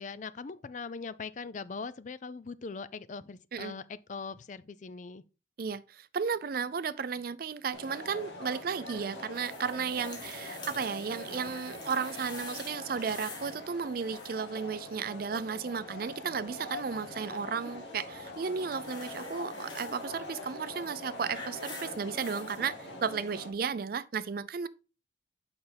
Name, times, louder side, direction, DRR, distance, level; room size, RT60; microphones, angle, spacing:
voice 1, 0.0-5.2, left 4 dB, 40° left, 0.4 m, -41 dB
voice 2, 5.6-24.7, right 6 dB, 50° right, 0.4 m, -34 dB
sound 1, 7.7-23.5, left 2 dB, 75° left, 2.0 m, -43 dB
sound 2, 9.3-13.6 13.8-14.6 18.3-20.0 20.8-22.6 23.4-23.5, left 3 dB, 25° left, 2.0 m, -47 dB
6.7 x 5.7 x 3.4 m
head